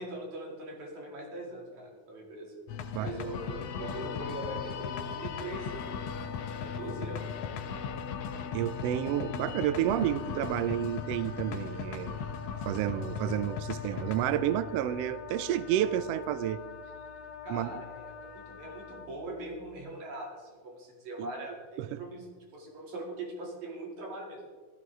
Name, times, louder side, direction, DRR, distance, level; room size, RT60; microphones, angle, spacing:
voice 1, 0.0-2.5 3.0-5.8 6.6-7.3 17.4-22.3 22.5-24.5, right 2 dB, 70° right, 3.9 m, -41 dB
sound 1, 2.7-19.8, left 7 dB, 70° left, 1.6 m, -39 dB
Wind instrument woodwind instrument, 3.8-19.1, left 6 dB, 55° left, 2.4 m, -45 dB
voice 2, 8.5-12.4 12.7-16.6 17.5-17.8 21.2-21.3 21.8-22.0, right 12 dB, 90° right, 1.4 m, -30 dB
15.0 x 13.0 x 3.6 m
omnidirectional pair, 3.4 m